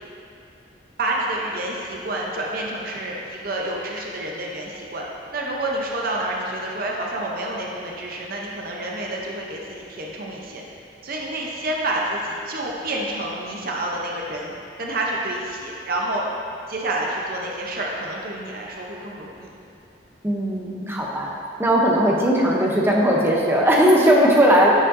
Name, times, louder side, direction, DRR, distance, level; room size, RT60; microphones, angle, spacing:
voice 1, 1.0-5.0 5.3-10.6 11.0-14.5 14.8-16.3 16.7-19.5 20.8-21.0, right 1 dB, 50° right, -2 dB, 0.7 m, -28 dB
voice 2, 20.2-21.3 21.6-24.7, equal, 15° right, -3 dB, 0.7 m, -18 dB
9.8 x 5.1 x 2.7 m, 2.7 s
head